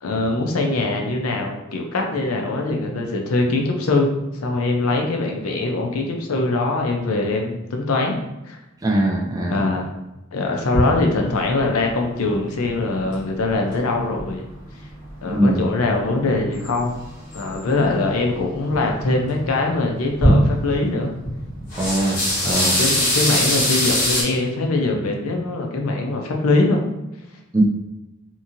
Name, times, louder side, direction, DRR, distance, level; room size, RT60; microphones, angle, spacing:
voice 1, 0.0-4.1 4.4-8.2 8.5-8.6 9.5-9.9 10.3-14.5 15.2-16.9 17.3-21.1 22.4-26.8, left 2 dB, 90° left, 2 dB, 0.5 m, -22 dB
voice 2, 8.8-9.6 15.3-15.7 21.8-22.2 22.5-22.8 27.5-27.6, right 1 dB, 15° right, -1 dB, 0.4 m, -21 dB
sound 1, 10.7-14.4 14.7-15.7 16.0-16.1 16.5-17.9 18.3-19.5 19.8-20.9 21.2-24.2, equal, 40° left, 1.2 m, -22 dB
2.9 x 2.6 x 2.5 m, 0.98 s
head